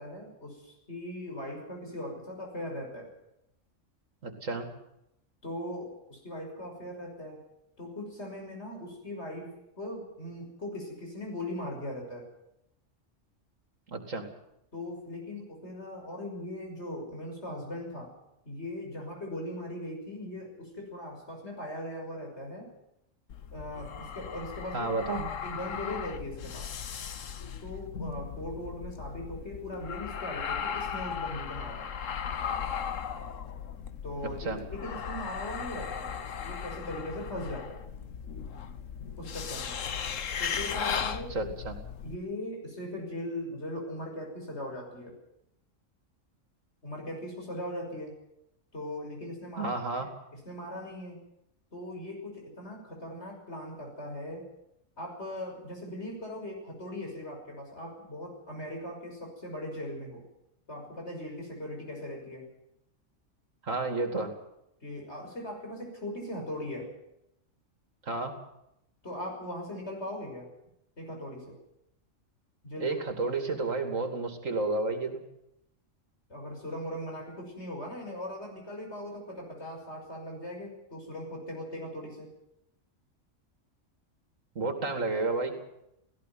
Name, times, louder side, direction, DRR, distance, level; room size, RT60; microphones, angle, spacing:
voice 1, 0.0-3.1 5.4-7.4 7.8-12.3 14.7-18.1 18.4-22.7 23.5-24.9 25.4-26.8 27.6-31.9 34.0-37.8 39.2-39.8 40.4-41.3 42.0-45.2 46.8-48.1 48.7-49.7 50.3-51.2 51.7-54.5 55.0-60.2 60.7-62.5 64.8-66.9 69.0-70.5 71.0-71.5 72.6-72.9 76.3-82.3, left 1 dB, 55° left, 1 dB, 6.4 m, -39 dB
voice 2, 4.2-4.7 13.9-14.2 24.7-25.3 34.4-34.6 41.3-41.7 49.6-50.1 63.6-64.3 68.0-68.3 72.8-75.2 84.5-85.6, right 3 dB, 75° right, 6 dB, 3.1 m, -31 dB
sound 1, 23.3-42.2, left 7 dB, 75° left, 1.4 m, -37 dB
17.0 x 17.0 x 9.4 m, 0.81 s
omnidirectional pair, 1.3 m